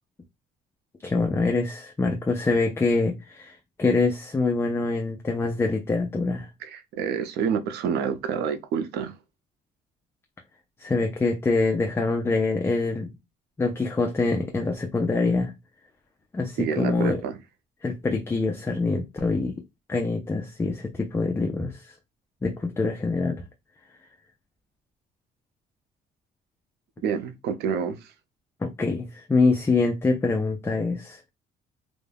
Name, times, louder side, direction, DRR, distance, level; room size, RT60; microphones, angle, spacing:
voice 1, 1.0-6.5 10.8-13.1 13.6-15.5 16.3-17.2 17.8-19.5 19.9-21.9 22.4-23.4 28.6-31.3, left 3 dB, 15° left, 0.4 m, -25 dB
voice 2, 6.6-9.1 16.6-17.4 27.0-28.1, right 7 dB, 75° right, 0.5 m, -28 dB
2.3 x 2.0 x 3.2 m
cardioid pair, 110°, 17 cm